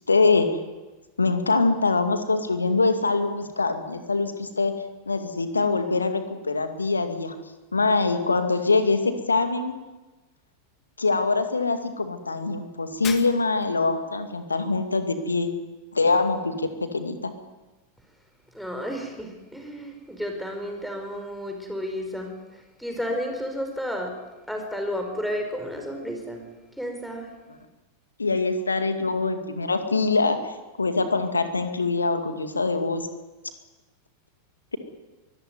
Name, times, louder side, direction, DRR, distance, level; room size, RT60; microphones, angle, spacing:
voice 1, 0.1-0.5 1.2-4.7 5.1-7.3 7.7-9.7 11.0-15.5 15.9-17.3 28.2-30.4 30.8-33.0, left 3 dB, 75° left, 8 dB, 2.2 m, -24 dB
Shatter, 13.0-13.8, left 8 dB, 30° left, 2.2 m, -37 dB
voice 2, 18.5-24.1 24.5-26.5 26.8-27.3, equal, ahead, 3 dB, 5.2 m, -32 dB
23.0 x 15.0 x 9.6 m, 1.2 s
figure-of-eight pair, 90°, 0 cm